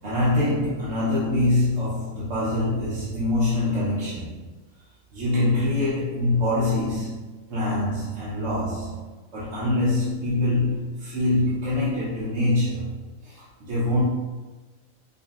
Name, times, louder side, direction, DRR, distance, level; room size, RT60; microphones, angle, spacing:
voice 1, 0.0-4.4 5.1-7.2 7.5-9.0 9.3-12.9 13.2-14.0, left 2 dB, 65° right, -9 dB, 1.1 m, -24 dB
5.4 x 2.1 x 2.3 m, 1.2 s
omnidirectional pair, 1.4 m